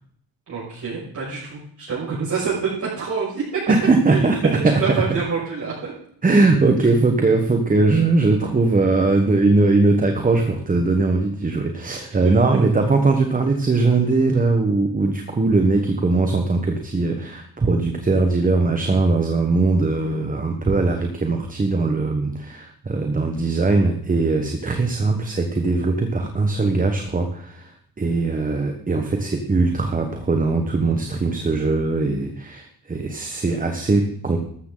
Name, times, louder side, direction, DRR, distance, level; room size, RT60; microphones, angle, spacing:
voice 1, 0.5-3.4 4.1-4.3 4.6-5.9 12.2-12.3, right 5 dB, 40° right, -9 dB, 6.5 m, -26 dB
voice 2, 3.7-4.8 6.2-27.7 28.0-34.4, right 3 dB, 20° right, 5 dB, 1.3 m, -20 dB
13.5 x 13.0 x 4.0 m, 0.66 s
cardioid pair, 135°, 45 cm